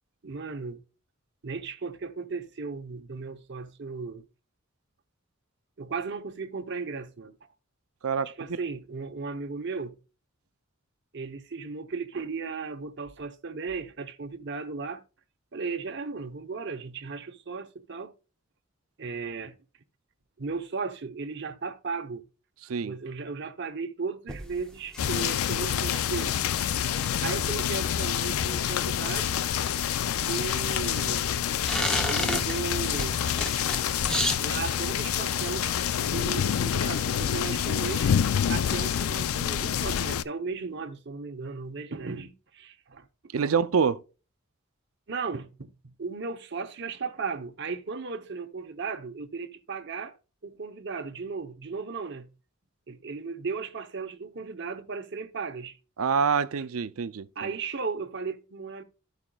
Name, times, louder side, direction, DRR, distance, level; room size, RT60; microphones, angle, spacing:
voice 1, 0.2-0.8 1.4-4.2 5.8-7.3 8.2-10.0 11.1-15.0 15.5-18.1 19.0-19.6 20.4-22.2 22.8-26.7 27.2-29.4 30.3-31.3 32.0-33.2 34.4-38.1 38.5-43.1 45.1-50.2 50.4-52.3 52.9-55.8 57.4-58.8, right 4 dB, 55° right, 0.8 m, -36 dB
voice 2, 8.0-8.6 22.7-23.0 43.3-44.0 56.0-57.3, right 6 dB, 85° right, 0.5 m, -26 dB
sound 1, 24.3-37.7, equal, 5° left, 0.7 m, -36 dB
sound 2, 25.0-40.2, left 9 dB, 90° left, 0.4 m, -27 dB
14.0 x 4.9 x 2.3 m
head